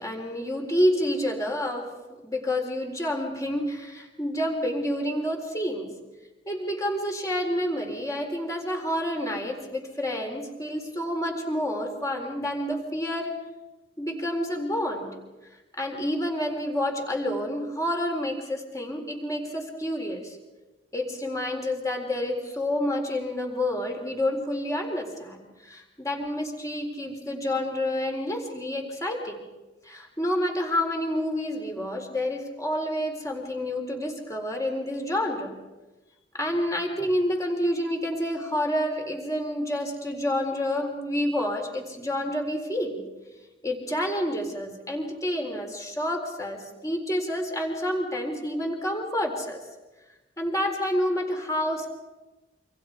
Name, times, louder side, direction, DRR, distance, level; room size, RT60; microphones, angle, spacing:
voice 1, 0.0-1.9 2.2-5.9 6.5-13.3 14.0-15.2 15.8-20.4 20.9-29.4 29.9-35.6 36.3-43.0 43.6-49.6 50.4-51.9, left 1 dB, 20° left, 2 dB, 4.2 m, -29 dB
28.0 x 26.0 x 4.8 m, 1.1 s
head